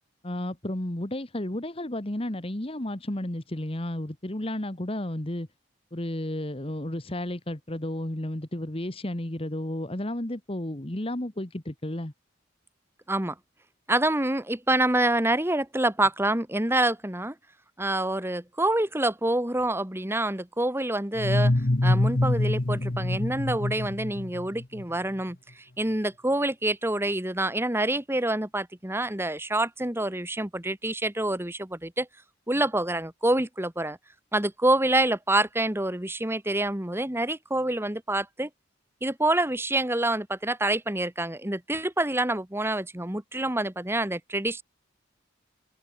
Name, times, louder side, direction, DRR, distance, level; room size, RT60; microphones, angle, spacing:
voice 1, 0.2-5.5 5.9-12.1, left 1 dB, 30° left, 1.5 m, -32 dB
voice 2, 13.9-17.3 17.8-21.5 21.8-32.1 32.5-34.0 34.3-38.5 39.0-44.6, right 1 dB, 10° right, 1.6 m, -27 dB
sound 1, 21.2-24.8, left 1 dB, 45° left, 1.1 m, -25 dB
open air
head